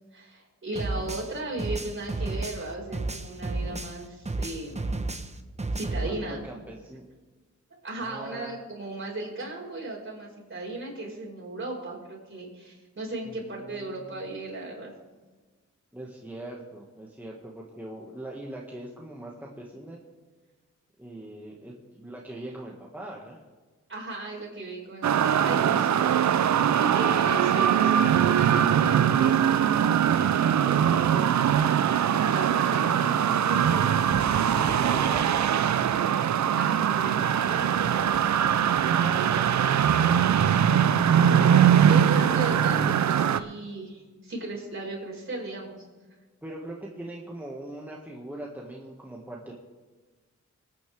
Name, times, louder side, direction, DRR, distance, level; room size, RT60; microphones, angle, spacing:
voice 1, 0.1-5.1 5.7-6.4 7.8-14.9 23.9-29.6 32.3-34.8 36.5-39.9 41.1-45.8, right 2 dB, 45° right, -3 dB, 5.3 m, -36 dB
sound 1, 0.8-4.0 4.3-6.1, right 2 dB, 20° right, 1.0 m, -32 dB
voice 2, 6.0-7.1 8.0-8.5 13.3-14.2 15.9-20.0 21.0-23.4 30.6-31.7 34.4-35.6 38.9-40.4 46.4-49.5, right 1 dB, 5° right, -3 dB, 1.8 m, -41 dB
sound 2, 25.0-43.4, right 9 dB, 65° right, 0.6 m, -22 dB
24.0 x 9.4 x 3.5 m, 1.3 s
cardioid pair, 75°, 30 cm